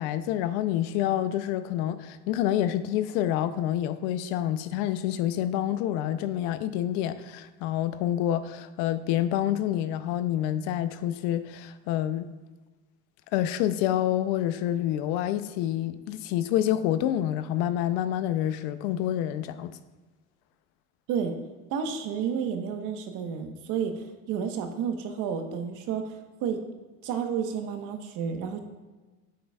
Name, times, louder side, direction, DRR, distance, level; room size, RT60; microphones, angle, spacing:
voice 1, 0.0-12.3 13.3-19.7, left 12 dB, 75° left, 0.6 m, -27 dB
voice 2, 21.7-26.6 27.0-28.6, right 7 dB, 60° right, 1.2 m, -31 dB
9.4 x 7.7 x 2.4 m
supercardioid pair, 110°, 34 cm